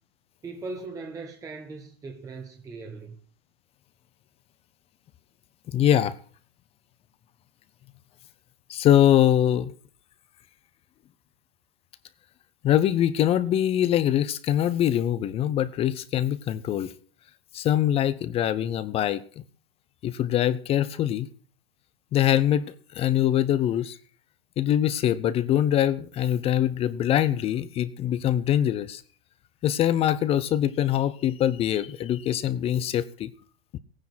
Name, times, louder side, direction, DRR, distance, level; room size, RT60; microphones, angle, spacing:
voice 1, 0.4-3.2, right 3 dB, 10° right, 1.1 m, -39 dB
voice 2, 5.7-6.2 8.7-9.7 12.6-16.9 17.5-19.4 20.0-21.3 22.1-22.7 22.9-24.0 24.6-29.0 29.6-33.3, left 11 dB, 20° left, 0.7 m, -23 dB
16.0 x 9.6 x 6.1 m
hypercardioid pair, 130°, 30 cm